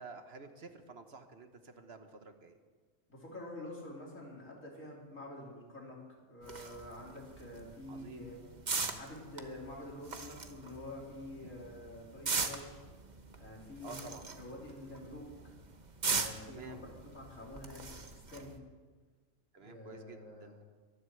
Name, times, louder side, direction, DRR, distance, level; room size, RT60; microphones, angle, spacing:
voice 1, 0.0-2.6 7.9-8.3 13.8-14.3 16.5-16.8 19.5-20.5, right 4 dB, 55° right, 7 dB, 1.4 m, -50 dB
voice 2, 3.1-6.0 6.3-8.4 8.9-12.8 13.4-15.5 16.0-16.8 17.1-18.5 19.6-20.5, left 1 dB, 80° left, -2 dB, 4.0 m, -47 dB
sound 1, 6.4-18.6, right 4 dB, 35° right, 1.1 m, -41 dB
22.5 x 7.9 x 7.9 m, 1.4 s
omnidirectional pair, 1.3 m